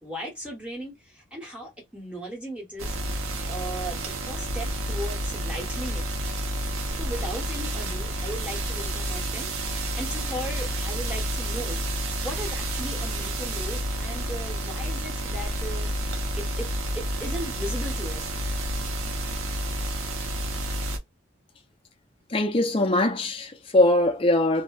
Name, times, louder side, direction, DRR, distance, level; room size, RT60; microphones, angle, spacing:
voice 1, 0.0-3.0 3.5-6.0 7.0-9.5 9.9-11.8 12.2-15.9 16.3-16.7 16.9-18.3, right 1 dB, 5° right, 1.0 m, -37 dB
sound 1, 2.8-21.0, right 1 dB, 85° right, 0.6 m, -30 dB
voice 2, 22.3-24.6, left 1 dB, 25° left, 0.4 m, -22 dB
2.7 x 2.0 x 2.3 m
head